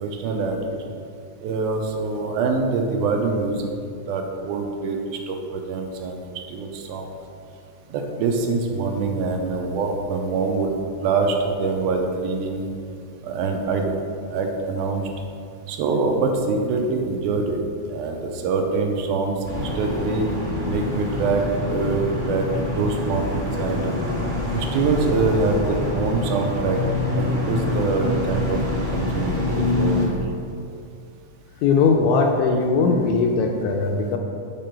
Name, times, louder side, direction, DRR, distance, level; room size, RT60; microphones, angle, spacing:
voice 1, 0.0-0.8 1.4-3.7 4.1-6.2 6.5-7.1 7.9-10.8 11.0-12.7 13.2-13.9 14.3-15.1 15.7-17.6 17.9-20.3 20.7-23.9 24.5-26.8 27.2-28.6 28.9-30.2, right 4 dB, 90° right, 3 dB, 2.1 m, -24 dB
sound 1, 19.4-30.1, left 2 dB, 35° right, 0.7 m, -25 dB
voice 2, 31.6-34.2, left 4 dB, 80° left, 2 dB, 1.7 m, -19 dB
6.5 x 5.2 x 4.4 m, 2.4 s
omnidirectional pair, 3.6 m